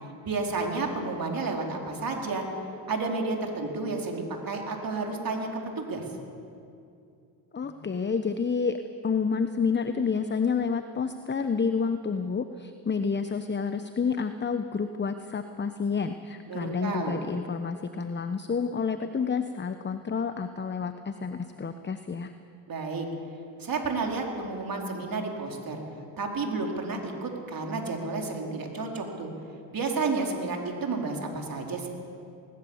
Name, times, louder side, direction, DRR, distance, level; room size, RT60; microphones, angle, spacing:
voice 1, 0.2-2.4 2.9-6.0 16.5-17.2 22.7-23.1 23.6-25.8 26.2-29.3 29.7-31.9, right 3 dB, 45° right, 1 dB, 4.5 m, -31 dB
voice 2, 7.5-22.3, left 5 dB, 20° left, 9 dB, 1.0 m, -29 dB
20.0 x 19.0 x 7.4 m, 2.5 s
hypercardioid pair, 65°, 49 cm